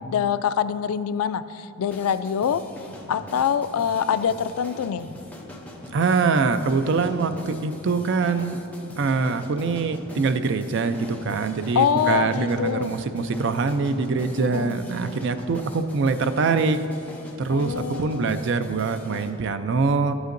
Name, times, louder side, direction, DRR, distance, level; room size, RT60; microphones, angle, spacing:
voice 1, 0.0-2.6 3.1-5.1 11.8-13.0 14.4-14.8 17.5-18.3, left 8 dB, 85° left, 13 dB, 0.3 m, -25 dB
sound 1, 1.8-19.3, left 1 dB, 5° left, 0.6 m, -42 dB
voice 2, 5.9-8.6 9.0-16.8 17.4-20.1, right 4 dB, 55° right, 10 dB, 0.4 m, -24 dB
12.5 x 8.0 x 2.6 m, 2.9 s
head